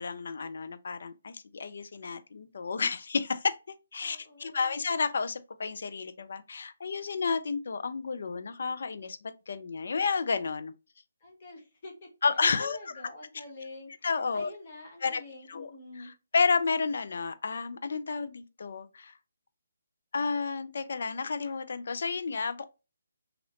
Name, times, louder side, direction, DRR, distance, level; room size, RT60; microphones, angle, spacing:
voice 1, 0.0-10.7 12.2-12.8 14.0-14.5 15.0-15.2 15.5-15.7 16.0-19.1 20.1-22.6, left 5 dB, 60° left, 0.4 m, -31 dB
voice 2, 4.0-4.8 11.2-12.1 12.6-16.1, left 2 dB, 40° left, 1.0 m, -47 dB
3.0 x 2.9 x 2.5 m
figure-of-eight pair, 150°, 0 cm